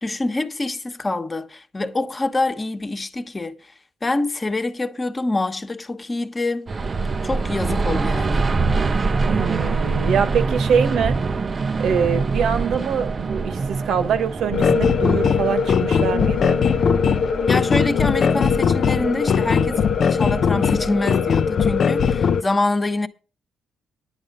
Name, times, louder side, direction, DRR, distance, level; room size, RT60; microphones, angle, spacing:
voice 1, 0.0-3.7 4.0-6.7 7.2-8.5 17.5-23.1, left 2 dB, 25° left, 1.2 m, -25 dB
sound 1, 6.7-21.3, right 4 dB, 35° right, 0.6 m, -26 dB
voice 2, 9.3-11.2 11.8-16.6, right 7 dB, 75° right, 1.4 m, -23 dB
sound 2, 14.5-22.4, left 6 dB, 55° left, 0.6 m, -19 dB
10.5 x 8.9 x 5.3 m
cardioid pair, 90°, 0 cm